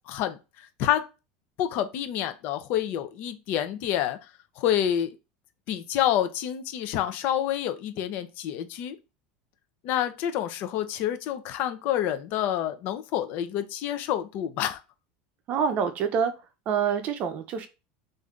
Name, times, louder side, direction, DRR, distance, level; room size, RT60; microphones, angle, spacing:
voice 1, 0.1-0.4 0.8-1.0 1.6-4.2 4.6-5.1 5.7-9.0 9.8-14.8, left 11 dB, 45° left, 0.6 m, -28 dB
voice 2, 15.5-16.3 16.7-17.7, right 7 dB, 35° right, 0.6 m, -26 dB
3.2 x 2.6 x 3.6 m
supercardioid pair, 155°, 4 cm